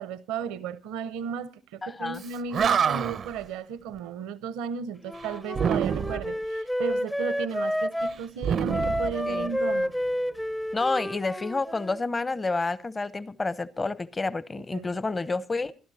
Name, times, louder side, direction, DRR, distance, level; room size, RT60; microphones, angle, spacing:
voice 1, 0.0-9.9 14.7-14.9, right 7 dB, 80° right, 0.8 m, -35 dB
voice 2, 1.8-2.2 9.3-9.5 10.7-15.7, left 3 dB, 30° left, 0.9 m, -29 dB
Animal, 2.2-2.3 2.5-3.4 5.5-6.4 8.4-9.7, right 7 dB, 55° right, 0.6 m, -27 dB
Wind instrument woodwind instrument, 5.0-8.2 8.7-12.0, equal, 5° left, 0.6 m, -30 dB
26.5 x 12.5 x 2.8 m
hypercardioid pair, 50°, 0 cm